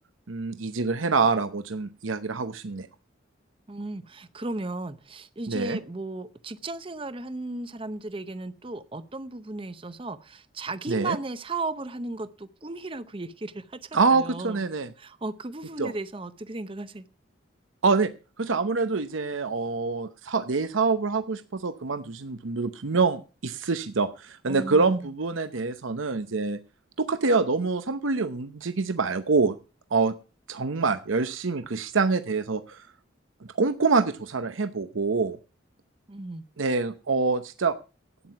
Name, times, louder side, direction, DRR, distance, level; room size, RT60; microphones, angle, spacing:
voice 1, 0.3-2.9 5.5-5.8 10.9-11.2 13.9-14.9 15.8-15.9 17.8-18.1 18.4-26.6 27.0-29.6 29.9-30.1 30.5-32.8 33.6-35.4 36.6-37.8, right 4 dB, 85° right, 10 dB, 0.9 m, -25 dB
voice 2, 3.7-14.6 15.0-17.1 24.5-25.1 36.1-36.5, right 2 dB, 25° right, 13 dB, 0.7 m, -35 dB
12.0 x 9.4 x 5.8 m, 0.33 s
head